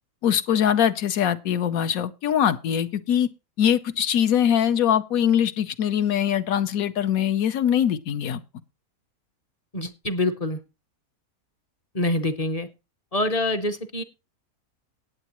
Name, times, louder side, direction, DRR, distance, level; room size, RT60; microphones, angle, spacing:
voice 1, 0.2-3.3 3.6-8.4, left 9 dB, 70° left, 1.2 m, -22 dB
voice 2, 9.7-10.6 11.9-12.7 13.1-14.0, left 2 dB, 35° left, 0.7 m, -25 dB
18.0 x 8.1 x 3.0 m
omnidirectional pair, 1.6 m